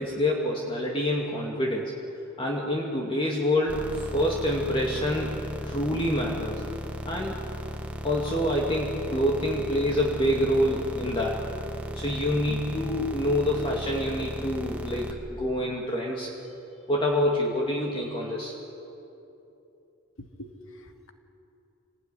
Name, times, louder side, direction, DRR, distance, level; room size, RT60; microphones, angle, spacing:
voice 1, 0.0-1.8 2.4-5.3 5.6-6.6 7.1-7.4 8.0-11.4 12.0-16.3 16.9-18.5, left 1 dB, 25° left, -2 dB, 2.4 m, -27 dB
sound 1, 3.7-15.1, equal, 5° right, 1.7 m, -36 dB
voice 2, 20.2-21.1, equal, 70° left, 5 dB, 2.1 m, -45 dB
25.5 x 19.0 x 9.9 m, 3.0 s
head